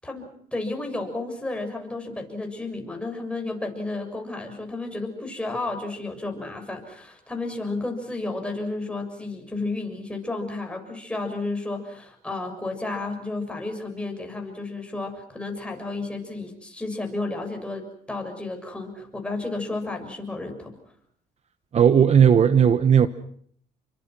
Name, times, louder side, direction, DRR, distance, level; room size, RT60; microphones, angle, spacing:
voice 1, 0.0-20.8, left 2 dB, 5° left, 6.9 m, -32 dB
voice 2, 21.7-23.1, right 8 dB, 40° right, 1.1 m, -16 dB
30.0 x 24.0 x 6.2 m
cardioid pair, 110°, 17 cm